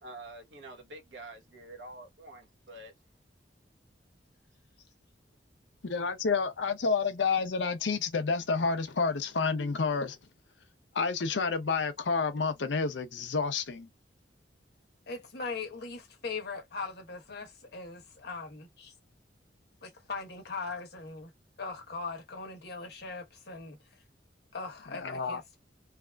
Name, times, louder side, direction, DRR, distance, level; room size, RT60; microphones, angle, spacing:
voice 1, 0.0-2.9, right 2 dB, 80° right, 1.1 m, -47 dB
voice 2, 5.9-10.2 10.9-13.9 24.9-25.4, left 4 dB, 85° left, 0.6 m, -29 dB
voice 3, 15.1-18.9 19.8-21.3 21.6-23.8 24.5-25.6, left 4 dB, 65° left, 1.1 m, -40 dB
3.3 x 2.4 x 2.2 m
head